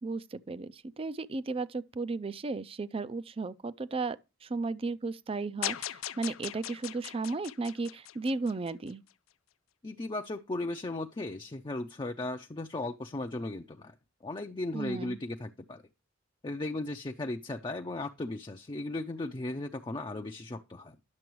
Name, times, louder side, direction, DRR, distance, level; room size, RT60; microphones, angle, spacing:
voice 1, 0.0-9.0 14.7-15.2, right 3 dB, 30° right, 0.4 m, -35 dB
sound 1, 5.6-8.9, left 12 dB, 85° left, 0.5 m, -39 dB
voice 2, 9.8-13.9 14.2-15.8 16.4-21.0, left 2 dB, 25° left, 0.5 m, -36 dB
10.5 x 6.9 x 3.1 m
head